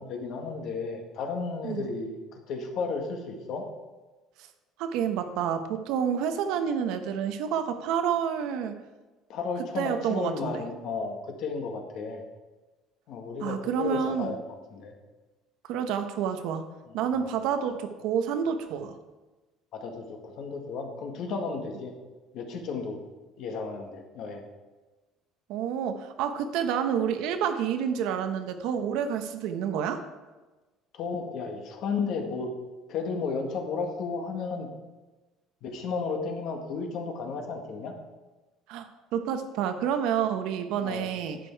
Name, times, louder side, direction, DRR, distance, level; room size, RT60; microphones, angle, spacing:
voice 1, 0.0-2.2 2.5-3.7 9.3-12.2 13.1-14.9 16.9-17.3 19.7-21.9 22.3-23.0 23.4-24.5 30.9-32.5 32.9-34.7 35.6-37.9 40.8-41.1, left 4 dB, 55° left, 4 dB, 1.7 m, -33 dB
voice 2, 4.8-8.7 9.8-10.6 13.4-14.3 15.7-16.6 16.9-18.9 25.5-30.0 38.7-41.4, right 8 dB, 70° right, 8 dB, 1.0 m, -29 dB
11.0 x 8.4 x 4.6 m, 1.2 s
cardioid pair, 150°, 0 cm